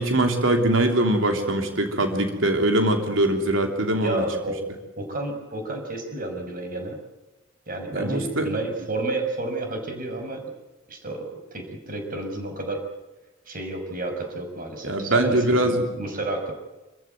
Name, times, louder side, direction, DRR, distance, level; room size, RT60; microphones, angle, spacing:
voice 1, 0.0-4.2 7.9-8.5 14.8-15.9, right 1 dB, 85° right, 4 dB, 3.2 m, -22 dB
voice 2, 4.0-4.6 5.0-7.0 7.7-10.4 10.9-12.8 13.5-16.5, right 2 dB, 45° right, 4 dB, 6.0 m, -31 dB
28.0 x 15.5 x 9.3 m, 1.1 s
head